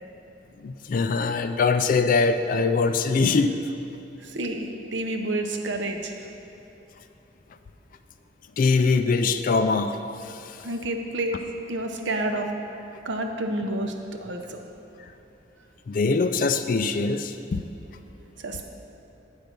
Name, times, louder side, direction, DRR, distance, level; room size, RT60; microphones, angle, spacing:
voice 1, 0.6-3.5 8.6-10.7 15.9-17.6, left 4 dB, 45° left, 10 dB, 0.3 m, -23 dB
voice 2, 4.2-6.1 10.6-11.4 11.7-12.5 13.0-13.9 14.2-14.6 18.4-18.6, right 1 dB, 65° right, 4 dB, 0.7 m, -29 dB
8.0 x 5.2 x 6.0 m, 3.0 s
head